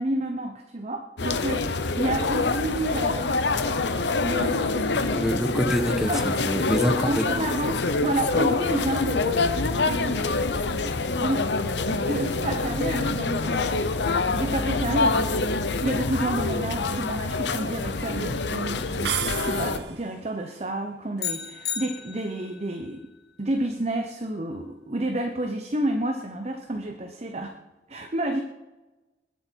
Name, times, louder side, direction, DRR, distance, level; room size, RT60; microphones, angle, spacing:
voice 1, 0.0-3.4 4.2-5.0 6.1-6.2 7.0-9.3 9.8-10.3 11.2-11.5 11.8-13.7 14.3-15.4 15.8-19.1 19.4-23.0 23.4-27.5 27.9-28.4, right 1 dB, 35° right, 5 dB, 0.9 m, -30 dB
sound 1, 1.2-19.8, left 3 dB, 85° left, 0.9 m, -26 dB
voice 2, 5.2-7.3, equal, ahead, 6 dB, 1.2 m, -25 dB
sound 2, 19.0-20.1, right 9 dB, 80° right, 0.9 m, -31 dB
sound 3, 21.2-22.6, left 8 dB, 60° left, 1.2 m, -33 dB
21.0 x 8.1 x 4.6 m, 1.1 s
head